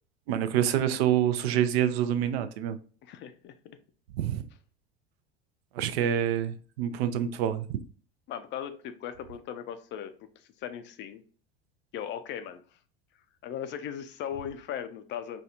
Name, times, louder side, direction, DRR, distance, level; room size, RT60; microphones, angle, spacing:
voice 1, 0.3-2.8 4.1-4.4 5.7-7.7, right 10 dB, 70° right, 0.5 m, -27 dB
voice 2, 3.0-3.8 8.3-11.2 11.9-12.6 13.4-15.4, left 9 dB, 35° left, 0.4 m, -38 dB
4.3 x 2.3 x 2.6 m
hypercardioid pair, 80°, 33 cm